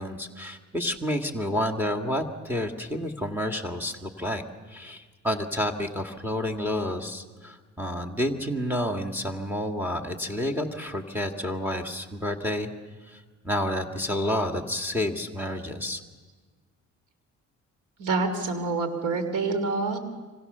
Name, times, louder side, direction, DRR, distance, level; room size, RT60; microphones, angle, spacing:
voice 1, 0.0-4.4 4.7-12.7 13.1-16.0, left 1 dB, 5° right, 4 dB, 2.0 m, -30 dB
voice 2, 18.0-20.0, right 3 dB, 80° right, 9 dB, 3.1 m, -27 dB
25.5 x 25.0 x 6.8 m, 1.4 s
cardioid pair, 90°, 30 cm